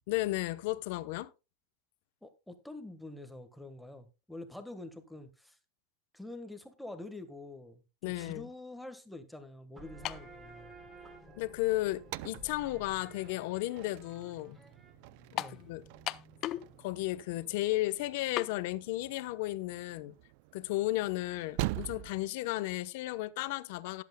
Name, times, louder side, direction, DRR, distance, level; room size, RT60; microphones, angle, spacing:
voice 1, 0.1-1.3 8.0-8.5 11.4-14.6 15.3-15.8 16.8-20.1 20.5-24.0, left 18 dB, 65° left, 0.9 m, -34 dB
voice 2, 2.2-5.6 6.1-10.7 15.3-15.6, left 2 dB, 5° left, 1.4 m, -46 dB
sound 1, 9.7-17.0, right 2 dB, 20° right, 3.6 m, -54 dB
sound 2, 10.0-10.3 11.2-11.3 15.4-15.6 16.1-16.7 17.0-17.1 18.4-18.5, left 14 dB, 40° left, 0.5 m, -36 dB
sound 3, 11.7-22.3, right 18 dB, 60° right, 0.4 m, -44 dB
19.0 x 8.1 x 2.2 m
supercardioid pair, 130°, 0 cm